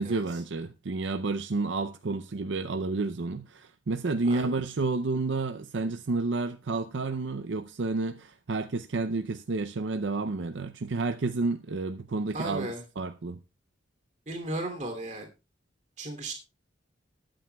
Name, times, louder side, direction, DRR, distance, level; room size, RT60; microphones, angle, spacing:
voice 1, 0.0-12.7 13.0-13.4, right 3 dB, 70° right, 0.6 m, -30 dB
voice 2, 12.3-12.8 14.3-15.3 16.0-16.3, right 1 dB, 40° right, 2.8 m, -35 dB
20.5 x 9.0 x 2.3 m
head